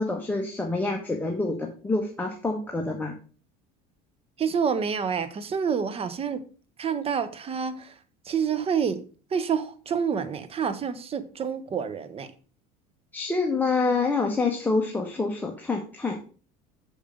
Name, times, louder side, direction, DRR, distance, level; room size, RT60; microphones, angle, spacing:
voice 1, 0.0-3.1 13.1-16.2, left 3 dB, 10° left, 1.3 m, -27 dB
voice 2, 4.4-6.4 6.8-7.9 8.2-9.0 9.3-12.3, right 6 dB, 30° right, 0.9 m, -28 dB
6.4 x 5.2 x 5.0 m
supercardioid pair, 100°, 19 cm